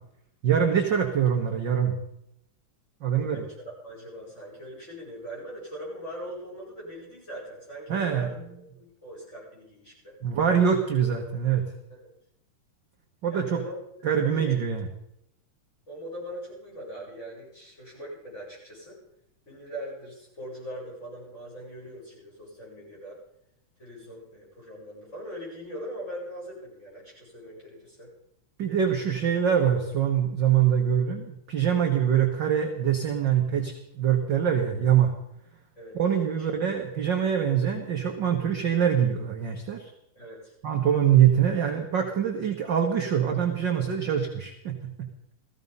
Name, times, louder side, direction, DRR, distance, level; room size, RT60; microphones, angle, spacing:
voice 1, 0.4-2.0 3.0-3.4 7.9-8.3 10.2-11.7 13.2-13.6 14.0-14.9 28.6-35.1 35.9-39.9 40.6-45.1, right 8 dB, 50° right, 3 dB, 1.4 m, -24 dB
voice 2, 3.2-8.4 8.7-10.1 13.3-13.7 14.2-14.5 15.9-19.0 19.5-23.2 23.8-28.1 35.8-36.4 40.1-40.5, equal, 20° left, -5 dB, 8.2 m, -41 dB
16.5 x 15.0 x 5.4 m, 0.78 s
omnidirectional pair, 3.7 m